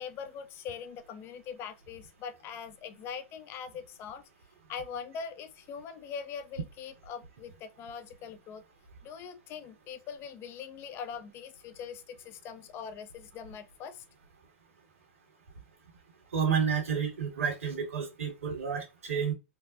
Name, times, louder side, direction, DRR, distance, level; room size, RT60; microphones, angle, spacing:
voice 1, 0.0-4.2 4.7-8.6 9.0-14.0, left 7 dB, 35° left, 0.6 m, -42 dB
voice 2, 16.3-19.3, right 7 dB, 90° right, 1.8 m, -30 dB
4.4 x 2.2 x 2.4 m
hypercardioid pair, 125°, 7 cm